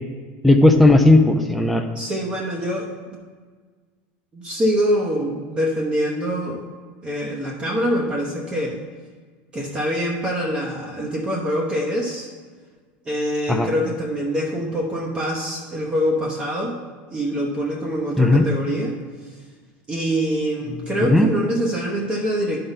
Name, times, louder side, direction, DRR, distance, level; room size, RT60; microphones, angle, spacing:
voice 1, 0.4-1.8 13.5-13.7 18.2-18.5 21.1-21.3, left 2 dB, ahead, 4 dB, 0.4 m, -15 dB
voice 2, 1.9-2.9 4.3-6.6 7.0-8.8 9.5-12.3 13.1-16.7 17.1-19.0 19.9-22.6, equal, 20° right, -2 dB, 0.9 m, -24 dB
10.5 x 3.8 x 4.0 m, 1.5 s
supercardioid pair, 145°, 5 cm